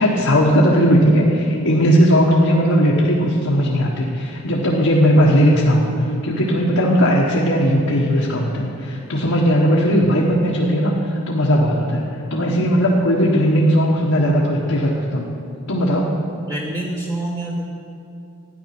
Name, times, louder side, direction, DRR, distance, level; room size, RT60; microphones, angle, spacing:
voice 1, 0.0-15.3 15.7-16.1, equal, 80° left, -4 dB, 1.5 m, -17 dB
voice 2, 16.5-17.7, right 1 dB, 15° right, -4 dB, 1.1 m, -26 dB
12.5 x 9.9 x 6.0 m, 2.5 s
head